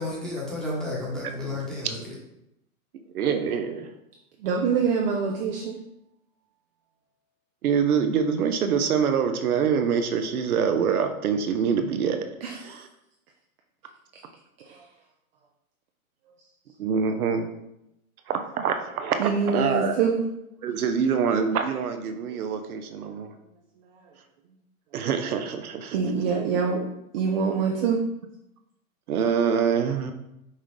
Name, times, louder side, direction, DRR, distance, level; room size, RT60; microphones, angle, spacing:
voice 1, 0.0-2.1, left 2 dB, ahead, -6 dB, 1.0 m, -32 dB
voice 2, 3.1-3.9 7.6-12.2 12.6-12.9 16.8-17.5 18.3-20.0 20.6-23.3 24.9-26.0 29.1-30.1, right 6 dB, 80° right, 7 dB, 0.7 m, -25 dB
voice 3, 4.4-5.7 12.4-12.8 14.6-14.8 19.2-20.2 22.3-22.4 25.9-26.8 27.1-28.0, right 5 dB, 45° right, 1 dB, 0.5 m, -25 dB
5.5 x 2.4 x 3.2 m, 0.83 s
hypercardioid pair, 135°, 43 cm